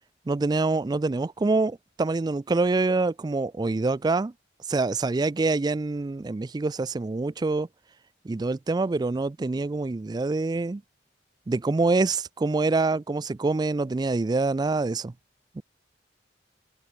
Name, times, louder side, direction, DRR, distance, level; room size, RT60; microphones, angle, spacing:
voice 1, 0.3-4.3 4.7-7.7 8.2-10.8 11.5-15.1 15.6-15.7, right 3 dB, 20° right, 0.3 m, -25 dB
head